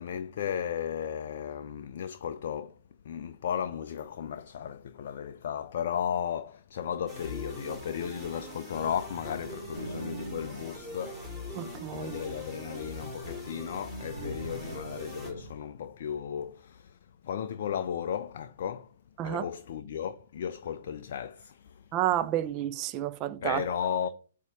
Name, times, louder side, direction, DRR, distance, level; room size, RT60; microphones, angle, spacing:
voice 1, 0.0-2.8 3.0-11.2 11.5-18.9 19.2-21.9 23.4-24.1, left 8 dB, 50° left, 0.3 m, -35 dB
sound 1, 7.1-15.3, left 1 dB, 5° right, 3.6 m, -42 dB
sound 2, 9.3-15.5, right 2 dB, 70° right, 0.8 m, -45 dB
voice 2, 11.5-12.1 19.2-19.4 21.9-23.6, right 12 dB, 25° right, 0.4 m, -30 dB
8.0 x 2.8 x 4.9 m
figure-of-eight pair, 115°, 0 cm